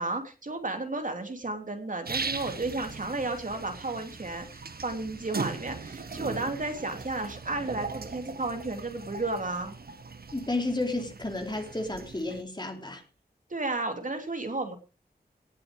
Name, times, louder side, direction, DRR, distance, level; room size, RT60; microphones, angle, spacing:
voice 1, 0.0-9.8 13.5-14.8, right 2 dB, 50° right, 6 dB, 3.2 m, -33 dB
sound 1, 2.1-12.4, right 4 dB, 70° right, 1.5 m, -39 dB
voice 2, 10.3-13.0, left 2 dB, 25° left, 3 dB, 3.7 m, -32 dB
18.5 x 7.8 x 4.9 m, 0.33 s
wide cardioid pair, 75°, 17 cm